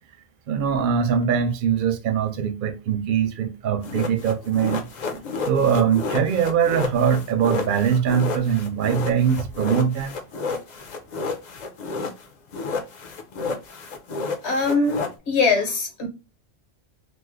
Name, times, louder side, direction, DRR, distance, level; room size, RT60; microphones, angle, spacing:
voice 1, 0.5-4.9 5.5-10.2, right 7 dB, 60° right, 0.6 m, -22 dB
sound 1, 3.8-12.3 12.5-15.1, left 4 dB, 50° left, 0.6 m, -30 dB
voice 2, 14.4-16.1, left 4 dB, 75° left, 1.2 m, -22 dB
3.1 x 2.0 x 3.4 m
omnidirectional pair, 1.1 m